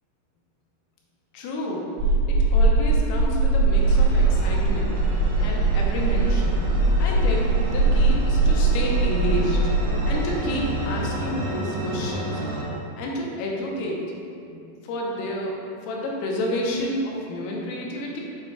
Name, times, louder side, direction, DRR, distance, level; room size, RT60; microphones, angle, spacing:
voice 1, 1.3-5.0 5.4-6.6 7.0-9.7 10.1-12.4 13.0-14.0 14.5-18.2, left 1 dB, 85° left, -2 dB, 3.5 m, -30 dB
sound 1, 2.0-10.3, right 3 dB, 85° right, 3.6 m, -21 dB
sound 2, 3.7-12.6, right 1 dB, 65° right, 2.0 m, -31 dB
8.2 x 6.8 x 2.4 m, 2.6 s
omnidirectional pair, 6.0 m